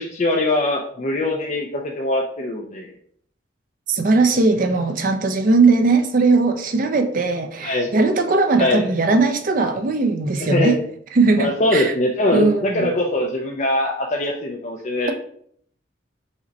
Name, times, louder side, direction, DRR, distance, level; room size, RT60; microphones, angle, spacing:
voice 1, 0.0-2.9 7.6-7.9 8.6-8.8 10.5-10.8 11.4-15.1, left 1 dB, 40° left, 0.4 m, -22 dB
voice 2, 3.9-10.8 11.1-11.9 12.3-12.9, right 3 dB, 45° right, 0.5 m, -19 dB
5.0 x 2.1 x 4.0 m
head